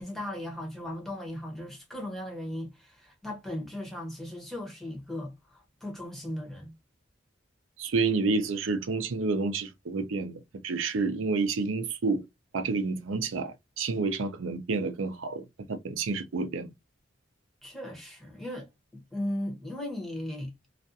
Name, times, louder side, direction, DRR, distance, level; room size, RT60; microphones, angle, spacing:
voice 1, 0.0-6.7 17.6-18.7 18.9-20.5, left 1 dB, ahead, 0.9 m, -37 dB
voice 2, 7.8-12.2 12.5-16.7, right 4 dB, 90° right, 0.5 m, -29 dB
2.4 x 2.2 x 2.6 m
head